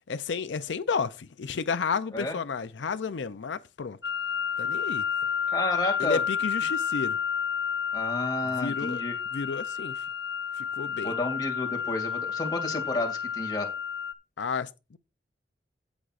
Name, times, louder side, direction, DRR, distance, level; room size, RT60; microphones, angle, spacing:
voice 1, 0.1-4.0 4.6-5.0 6.0-7.2 8.5-9.0 9.3-10.0 10.6-11.1 14.4-15.0, left 5 dB, 85° left, 0.5 m, -32 dB
sound 1, 4.0-14.1, left 7 dB, 65° left, 0.9 m, -30 dB
voice 2, 5.5-6.2 7.9-9.2 11.0-13.7, left 2 dB, 25° left, 2.3 m, -31 dB
16.5 x 6.2 x 2.5 m
head